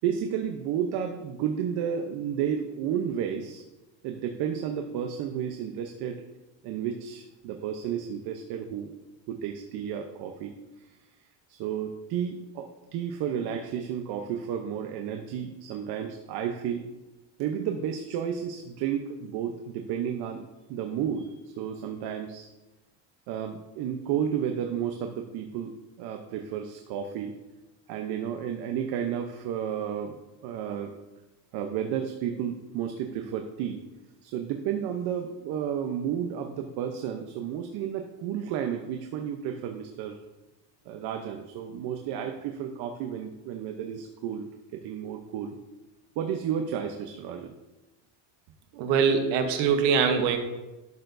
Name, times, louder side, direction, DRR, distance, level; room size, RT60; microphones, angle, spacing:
voice 1, 0.0-3.6 4.0-6.2 6.6-8.9 9.3-10.5 10.8-10.9 11.5-16.9 17.4-22.5 23.3-27.4 27.9-30.9 31.5-33.8 34.2-40.2 40.9-45.6 46.2-47.5, right 8 dB, 60° right, 5 dB, 0.8 m, -32 dB
voice 2, 48.8-50.4, right 6 dB, 85° right, 5 dB, 1.1 m, -23 dB
12.0 x 6.8 x 2.6 m, 1.1 s
cardioid pair, 150°, 43 cm